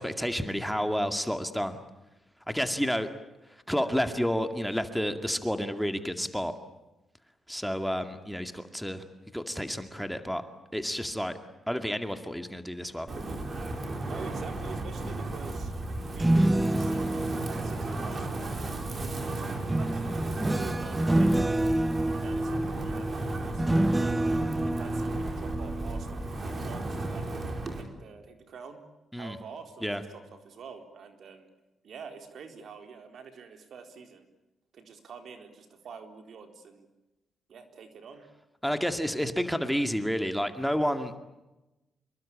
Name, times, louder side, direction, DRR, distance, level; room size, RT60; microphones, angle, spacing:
voice 1, 0.0-1.8 2.5-3.1 3.7-6.5 7.5-9.0 9.3-10.4 10.7-11.3 11.7-13.1 29.1-29.4 29.8-30.0 38.6-41.2, equal, ahead, 8 dB, 2.2 m, -30 dB
Wind, 13.1-27.8, right 2 dB, 40° right, 5.0 m, -34 dB
voice 2, 14.0-15.7 16.1-18.8 19.2-21.8 22.1-27.3 27.7-28.8 29.2-31.5 31.8-34.3 34.7-36.9 37.5-38.3, right 6 dB, 65° right, 6 dB, 4.0 m, -47 dB
sound 1, 16.0-18.9 19.7-26.6 27.0-27.3, right 1 dB, 15° right, 0.8 m, -28 dB
26.5 x 22.5 x 8.7 m, 1.0 s
cardioid pair, 85°, 0 cm